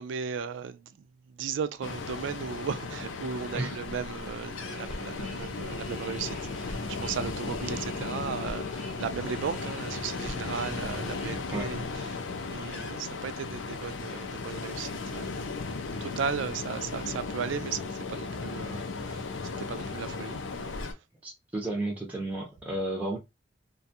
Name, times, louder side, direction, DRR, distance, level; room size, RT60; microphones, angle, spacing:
voice 1, 0.0-12.2 12.5-15.6 16.0-21.0, right 6 dB, 75° right, 0.3 m, -36 dB
Ocean, 1.8-20.9, left 4 dB, 80° left, 0.5 m, -36 dB
sound 1, 4.6-12.0 12.5-12.6, equal, 30° left, 0.8 m, -44 dB
voice 2, 21.2-23.2, right 1 dB, 10° right, 0.5 m, -32 dB
2.5 x 2.2 x 2.6 m
head